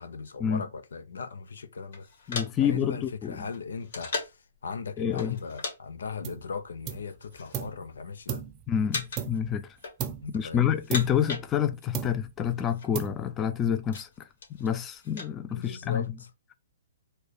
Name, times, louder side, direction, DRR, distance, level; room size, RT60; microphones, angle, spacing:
voice 1, 0.0-8.4 10.2-10.7 15.5-16.1, left 5 dB, 80° left, 0.7 m, -38 dB
sound 1, 1.9-4.5 5.2-5.8 6.0-6.2 6.9-7.7 8.0-8.5 8.9-9.4 9.7-10.3 10.7-12.0 12.2-12.3 12.5-12.9 13.4-15.3, left 4 dB, 65° left, 2.0 m, -38 dB
voice 2, 2.3-3.5 5.0-5.4 8.7-9.7 10.3-14.3 14.6-16.1, left 8 dB, 20° left, 0.4 m, -28 dB
sound 2, 6.2-6.5 6.8-7.8 8.3-9.6 10.0-10.4 10.9-11.6 11.9-12.5 12.9-13.5, right 8 dB, 25° right, 0.6 m, -36 dB
4.4 x 2.2 x 4.7 m
hypercardioid pair, 145°, 0 cm